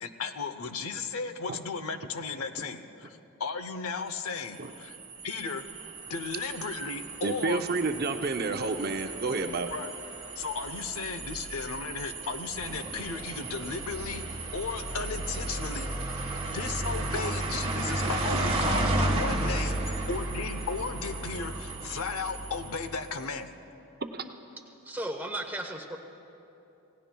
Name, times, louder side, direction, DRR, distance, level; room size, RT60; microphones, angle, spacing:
voice 1, 0.0-5.0 5.2-5.6 6.1-7.6 9.7-9.9 10.4-16.1 16.4-19.8 20.1-23.5, left 4 dB, 75° left, 9 dB, 0.7 m, -35 dB
sound 1, 4.5-23.1, right 2 dB, 25° right, 1.4 m, -33 dB
voice 2, 7.2-9.7 17.2-17.3 24.0-24.3, right 3 dB, 45° right, 6 dB, 0.6 m, -30 dB
voice 3, 24.8-26.0, right 1 dB, 10° right, 3 dB, 0.9 m, -35 dB
28.0 x 17.0 x 2.3 m, 2.9 s
head